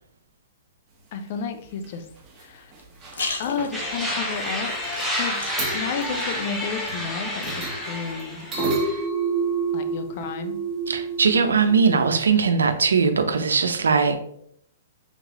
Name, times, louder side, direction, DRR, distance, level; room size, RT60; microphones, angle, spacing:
voice 1, 1.1-2.1 2.4-2.7 3.4-4.7 5.2-5.4 5.7-8.9 9.7-10.6, left 6 dB, 50° left, 7 dB, 0.6 m, -32 dB
sound 1, 1.6-1.9 2.2-2.4 2.7-3.3 3.6-3.7 5.2-5.3 5.6-7.1 7.4-12.1, right 4 dB, 20° right, 1.2 m, -30 dB
sound 2, 2.8-8.9, left 3 dB, 75° left, 0.9 m, -39 dB
sound 3, 3.7-9.0, left 1 dB, ahead, 0.9 m, -30 dB
voice 2, 10.9-14.2, right 5 dB, 85° right, 8 dB, 0.6 m, -20 dB
3.7 x 3.1 x 3.7 m, 0.68 s
hypercardioid pair, 125°, 0 cm